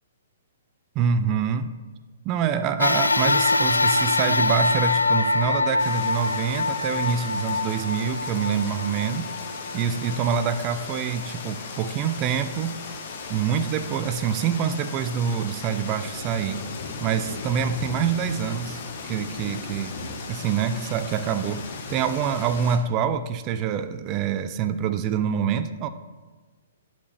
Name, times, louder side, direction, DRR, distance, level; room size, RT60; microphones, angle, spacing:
voice 1, 1.0-1.7 2.3-9.3 9.7-12.8 13.3-16.6 17.0-20.0 20.3-25.9, right 7 dB, 30° right, 11 dB, 0.4 m, -26 dB
sound 1, 2.8-11.4 12.0-12.1 13.2-13.3, left 3 dB, 90° left, 0.3 m, -24 dB
sound 2, 5.8-22.8, left 4 dB, 45° left, 1.1 m, -37 dB
11.0 x 4.4 x 3.3 m, 1.3 s
figure-of-eight pair, 120°, 0 cm